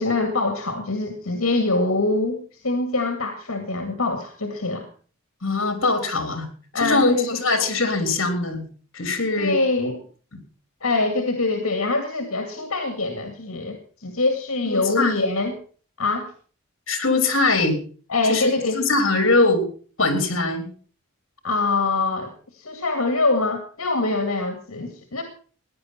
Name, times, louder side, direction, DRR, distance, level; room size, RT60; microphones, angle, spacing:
voice 1, 0.0-4.9 6.7-7.3 9.4-10.0 10.8-15.6 16.0-16.3 18.1-18.8 21.4-25.2, left 3 dB, 80° left, 6 dB, 2.1 m, -24 dB
voice 2, 5.4-6.5 6.8-8.6 8.9-9.6 14.7-15.1 16.9-17.8 18.3-19.7 20.0-20.7, left 3 dB, 65° left, 7 dB, 3.6 m, -21 dB
16.5 x 10.5 x 5.9 m, 0.42 s
head